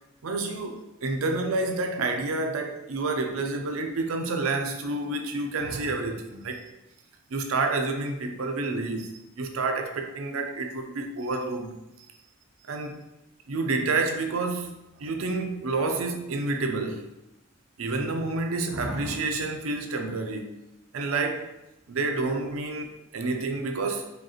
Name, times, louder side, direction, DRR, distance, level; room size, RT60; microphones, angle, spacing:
voice 1, 0.2-6.7 7.3-11.7 12.6-13.0 13.5-17.1 17.8-20.5 20.9-21.5 21.9-24.1, right 3 dB, 90° right, 0.5 m, -29 dB
5.0 x 2.4 x 2.9 m
head